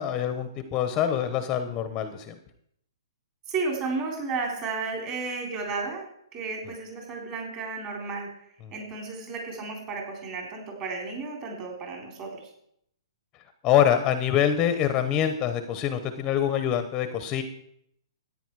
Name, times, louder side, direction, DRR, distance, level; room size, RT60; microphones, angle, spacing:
voice 1, 0.0-2.3 13.6-17.4, left 9 dB, 20° left, 9 dB, 0.9 m, -25 dB
voice 2, 3.5-8.3 8.7-12.5, right 4 dB, 30° right, 1 dB, 3.9 m, -33 dB
13.5 x 9.6 x 4.7 m, 0.71 s
hypercardioid pair, 150°, 3 cm